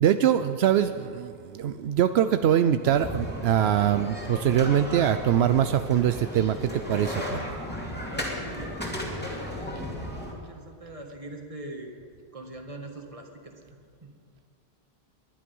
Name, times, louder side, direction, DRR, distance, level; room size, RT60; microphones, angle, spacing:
voice 1, 0.0-7.4, right 10 dB, 80° right, 10 dB, 0.8 m, -23 dB
sound 1, 2.8-10.3, left 1 dB, 10° left, 2.4 m, -35 dB
voice 2, 7.9-11.9 12.3-13.5 14.0-14.1, right 2 dB, 35° right, 3 dB, 1.8 m, -43 dB
20.5 x 11.5 x 5.4 m, 2.4 s
omnidirectional pair, 1.0 m